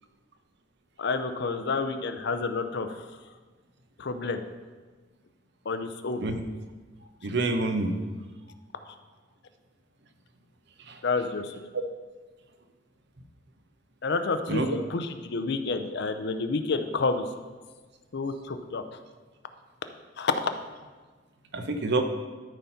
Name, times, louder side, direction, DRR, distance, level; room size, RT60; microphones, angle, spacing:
voice 1, 1.0-2.9 4.0-4.4 5.7-6.2 11.0-11.5 14.0-17.2 18.1-18.8 20.2-20.5, left 4 dB, 60° left, 8 dB, 0.6 m, -29 dB
voice 2, 7.2-7.9 10.9-11.0 14.5-14.8 21.5-22.0, right 2 dB, 65° right, 6 dB, 0.9 m, -27 dB
12.5 x 4.3 x 5.6 m, 1.4 s
head